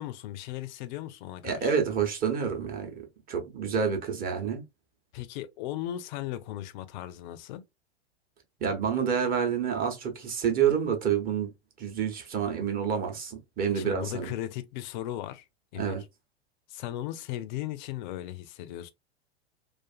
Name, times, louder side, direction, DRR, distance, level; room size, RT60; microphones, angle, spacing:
voice 1, 0.0-1.8 5.1-7.6 13.7-15.5 15.7-16.1 16.7-18.9, left 13 dB, 45° left, 0.4 m, -37 dB
voice 2, 1.4-2.9 3.3-4.6 8.6-11.5 11.8-14.3 15.8-16.0, right 7 dB, 25° right, 0.8 m, -28 dB
2.5 x 2.4 x 2.3 m
hypercardioid pair, 100°, 33 cm